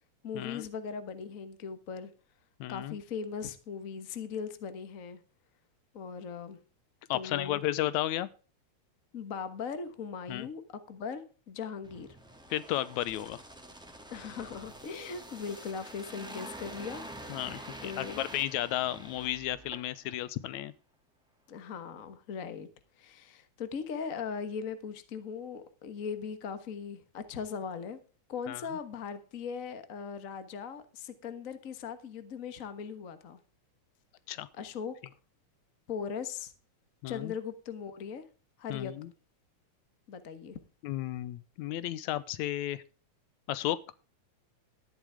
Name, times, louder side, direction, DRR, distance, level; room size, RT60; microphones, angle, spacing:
voice 1, 0.2-2.1 2.7-5.2 5.9-6.6 7.1-7.6 9.1-10.6 10.9-12.1 14.1-18.2 21.5-22.7 23.0-28.0 28.3-33.4 34.5-34.9 35.9-36.5 37.1-38.2 38.6-38.9 40.1-40.6, left 6 dB, 50° left, 0.9 m, -39 dB
voice 2, 2.6-3.0 7.1-8.3 10.3-10.5 12.5-13.4 17.3-20.7 28.5-28.7 34.3-34.5 37.0-37.3 38.7-39.1 40.8-42.8 43.5-43.8, left 14 dB, 80° left, 2.1 m, -33 dB
sound 1, 11.8-20.2 20.5-20.7, right 1 dB, ahead, 1.8 m, -47 dB
13.5 x 10.5 x 3.5 m
omnidirectional pair, 3.4 m